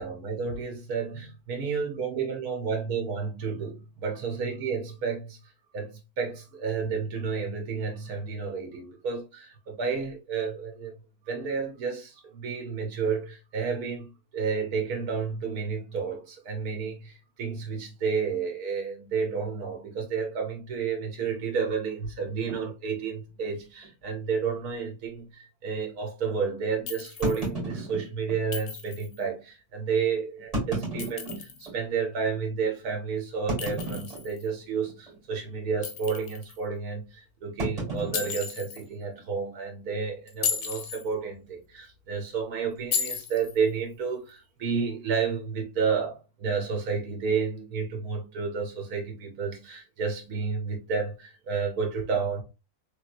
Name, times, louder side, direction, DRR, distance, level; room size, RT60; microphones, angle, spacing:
voice 1, 0.0-10.9 11.2-52.4, right 5 dB, 80° right, 1.4 m, -31 dB
sound 1, 22.5-22.7 23.4-23.5 23.8-23.9 24.5-24.6 27.2-28.4 29.2-29.3 30.4-31.8 32.3-32.4 33.5-34.6 34.9-35.2 35.5-35.8 37.6-39.2, right 1 dB, 25° right, 2.0 m, -33 dB
Chink clink, 26.9-27.5 28.5-29.2 30.8-31.7 33.6-34.5 35.8-36.6 38.1-38.8 40.3-41.1 42.9-43.6, left 7 dB, 90° left, 1.2 m, -34 dB
3.2 x 3.1 x 2.5 m
omnidirectional pair, 1.6 m